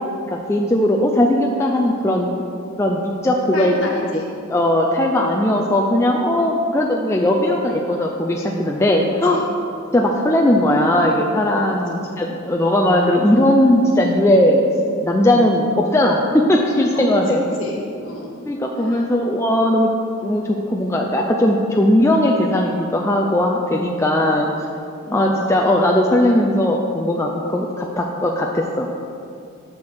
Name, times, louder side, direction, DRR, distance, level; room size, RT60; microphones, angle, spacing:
voice 1, 0.3-2.3 2.8-3.7 4.5-9.4 9.9-14.6 15.0-17.4 18.5-19.9 20.2-24.5 25.1-29.0, left 1 dB, 15° left, -1 dB, 0.4 m, -18 dB
voice 2, 3.5-4.2 9.3-9.4 11.7-12.1 16.9-18.3 18.8-19.0 24.2-24.3 25.0-25.3, left 1 dB, 65° left, -3 dB, 1.6 m, -30 dB
6.0 x 6.0 x 6.4 m, 2.5 s
head